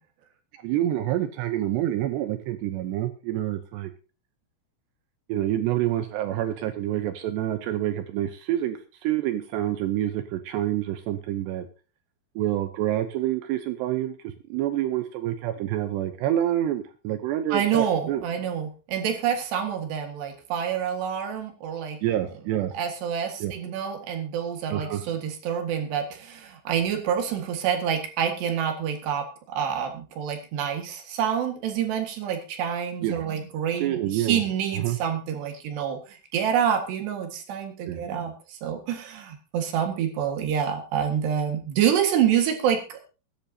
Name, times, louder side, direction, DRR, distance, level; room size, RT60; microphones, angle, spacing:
voice 1, 0.5-3.9 5.3-11.7 12.4-18.2 22.0-22.7 23.4-23.6 24.7-25.1 33.0-33.3 33.7-34.4 34.7-35.0 37.9-38.0, right 12 dB, 80° right, 8 dB, 2.4 m, -27 dB
voice 2, 17.5-22.0 22.7-43.0, right 8 dB, 65° right, 5 dB, 3.4 m, -27 dB
22.5 x 10.5 x 2.8 m, 0.33 s
omnidirectional pair, 6.0 m